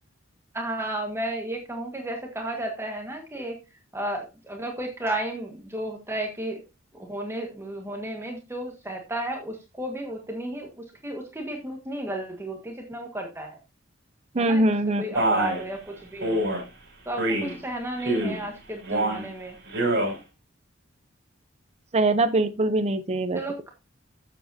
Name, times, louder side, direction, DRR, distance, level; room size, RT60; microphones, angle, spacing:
voice 1, 0.5-3.6 3.9-6.6 7.0-13.6 14.4-16.5 17.0-19.6 23.3-23.7, right 1 dB, 15° right, 2 dB, 1.6 m, -33 dB
voice 2, 14.4-15.0 21.9-23.4, right 2 dB, 35° right, 9 dB, 0.6 m, -22 dB
Male speech man speaking, 15.1-15.6 16.2-16.6 17.2-17.6 18.0-18.4 18.8-19.3 19.7-20.1, right 1 dB, 60° right, 5.8 m, -25 dB
12.5 x 8.0 x 2.7 m, 0.26 s
head